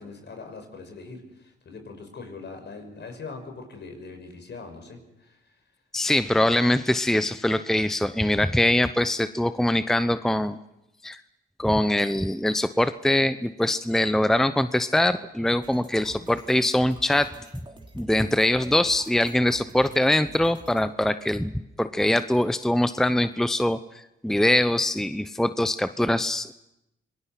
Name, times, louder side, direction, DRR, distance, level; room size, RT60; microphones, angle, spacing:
voice 1, 0.0-5.5, left 4 dB, 55° left, 5 dB, 6.0 m, -41 dB
voice 2, 5.9-10.6 11.0-11.2 11.6-17.3 17.9-21.5 21.8-23.8 24.2-26.5, left 1 dB, ahead, 12 dB, 0.8 m, -23 dB
sound 1, 15.6-20.8, right 2 dB, 20° right, 3.5 m, -47 dB
27.0 x 19.5 x 6.0 m, 0.87 s
supercardioid pair, 60°, 21 cm